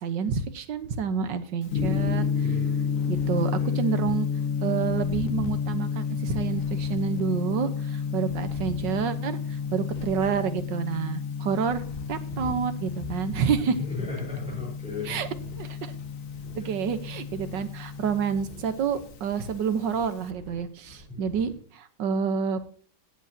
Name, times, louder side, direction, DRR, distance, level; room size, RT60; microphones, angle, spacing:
voice 1, 0.0-2.3 3.1-4.3 4.6-11.8 12.1-13.7 15.1-15.3 15.6-15.9 16.6-22.7, right 6 dB, 65° right, 11 dB, 1.6 m, -28 dB
Gong, 1.7-20.3, left 6 dB, 50° left, 1.1 m, -31 dB
sound 1, 1.8-4.1 4.6-7.5 8.0-11.0 11.4-21.5, equal, 25° left, 3.5 m, -46 dB
voice 2, 2.4-2.8 3.6-3.8 13.6-15.3 21.1-21.3, left 3 dB, 5° right, -5 dB, 4.8 m, -36 dB
17.0 x 8.2 x 2.8 m, 0.43 s
omnidirectional pair, 2.3 m